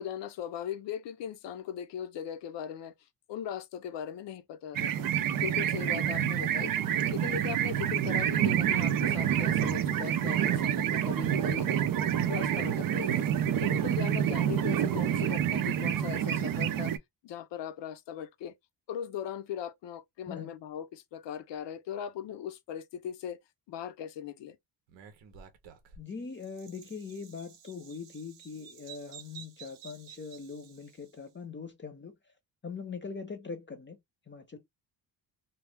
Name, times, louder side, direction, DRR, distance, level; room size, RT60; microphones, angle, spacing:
voice 1, 0.0-2.9 3.3-5.1 5.4-11.7 12.3-13.3 13.6-16.9 17.2-18.6 18.9-23.4 23.7-24.6, left 9 dB, 65° left, 0.6 m, -39 dB
sound 1, 4.7-17.0, right 10 dB, 50° right, 0.5 m, -28 dB
Bird vocalization bird call bird song, 24.9-31.2, right 8 dB, 85° right, 0.8 m, -52 dB
voice 2, 26.0-32.1 32.6-34.0 34.3-34.6, left 5 dB, 25° left, 0.7 m, -42 dB
2.3 x 2.0 x 3.2 m
supercardioid pair, 65°, 46 cm